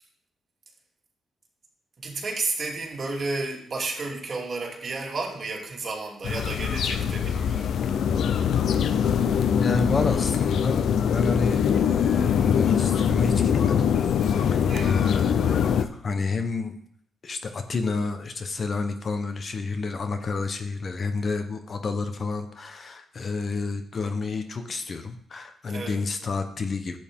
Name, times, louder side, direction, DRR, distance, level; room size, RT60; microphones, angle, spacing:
voice 1, 2.0-7.8 14.7-15.0 25.7-26.0, right 3 dB, 45° right, 0 dB, 2.4 m, -32 dB
sound 1, 6.2-15.8, left 8 dB, 70° left, 0.6 m, -23 dB
voice 2, 9.5-13.9 14.2-16.8 17.2-27.0, left 4 dB, 45° left, 7 dB, 1.0 m, -30 dB
11.5 x 8.2 x 3.7 m, 0.64 s
cardioid pair, 95°, 0 cm